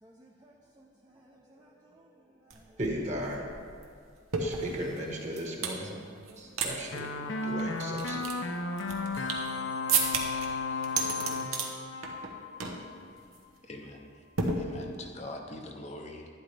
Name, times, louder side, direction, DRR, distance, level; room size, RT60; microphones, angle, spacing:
voice 1, 0.0-2.8 6.3-6.6, right 1 dB, 20° right, -2 dB, 0.6 m, -59 dB
sound 1, 2.5-2.6 2.8-5.8 6.2-6.7 7.0-7.1 7.6-9.5 9.9-10.5 10.8-11.7 12.0-12.3 12.6-12.9 13.2-13.4 14.4-15.1, right 5 dB, 90° right, 1.1 m, -32 dB
voice 2, 2.8-3.5 4.4-6.0 6.4-7.1 7.4-8.3, equal, 35° right, 0 dB, 1.4 m, -36 dB
sound 2, 6.9-13.0, left 3 dB, 65° left, 0.7 m, -34 dB
voice 3, 13.6-14.2 14.6-16.3, left 1 dB, 30° left, 2 dB, 0.6 m, -43 dB
11.5 x 10.5 x 3.4 m, 2.2 s
head